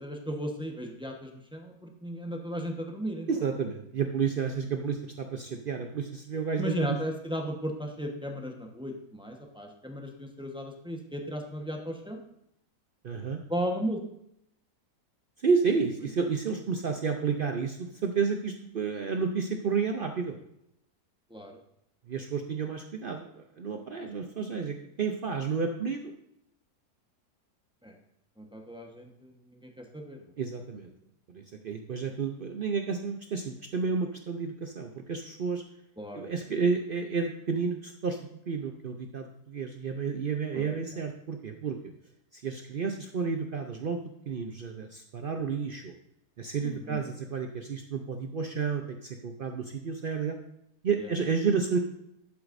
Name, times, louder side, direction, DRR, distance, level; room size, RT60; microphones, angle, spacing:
voice 1, 0.0-3.3 6.6-12.2 13.5-14.0 21.3-21.6 24.0-24.1 27.8-27.9 28.4-30.2 36.0-36.3 40.5-40.8 46.6-47.0 51.0-51.1, equal, 5° right, 1 dB, 0.8 m, -35 dB
voice 2, 3.3-7.0 13.0-13.4 15.4-20.4 22.1-26.1 30.4-30.9 31.3-35.6 36.1-38.2 38.5-41.8 42.3-45.9 46.4-50.4 50.8-51.8, right 5 dB, 85° right, 5 dB, 0.4 m, -31 dB
11.5 x 8.0 x 2.6 m, 0.78 s
omnidirectional pair, 1.8 m